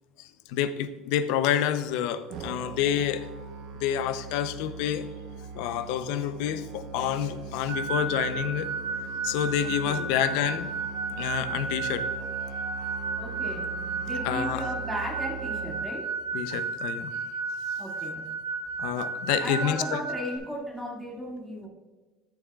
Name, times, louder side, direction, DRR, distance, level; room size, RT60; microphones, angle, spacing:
voice 1, 0.2-3.3 3.8-5.1 5.5-8.7 9.2-10.7 11.1-12.0 14.2-14.7 16.3-17.1 18.8-20.0, left 10 dB, 75° left, 11 dB, 0.6 m, -28 dB
Musical instrument, 2.3-15.8, right 5 dB, 55° right, 0.9 m, -41 dB
sound 1, 7.7-20.4, right 4 dB, 90° right, 1.5 m, -33 dB
voice 2, 9.6-10.1 13.2-13.6 14.0-16.1 17.8-18.3 19.4-21.7, equal, 5° right, -4 dB, 2.2 m, -36 dB
12.5 x 7.0 x 2.4 m, 1.3 s
cardioid pair, 150°, 0 cm